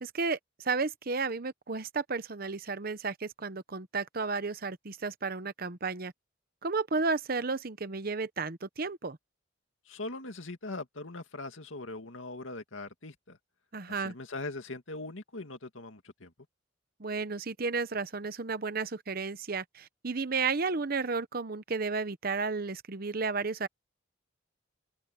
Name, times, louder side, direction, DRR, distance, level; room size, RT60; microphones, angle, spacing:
voice 1, 0.0-6.1 6.6-9.2 13.7-14.1 17.0-23.7, right 4 dB, 50° right, 0.9 m, -33 dB
voice 2, 9.9-13.4 13.9-16.3, left 2 dB, 85° left, 2.2 m, -41 dB
open air
head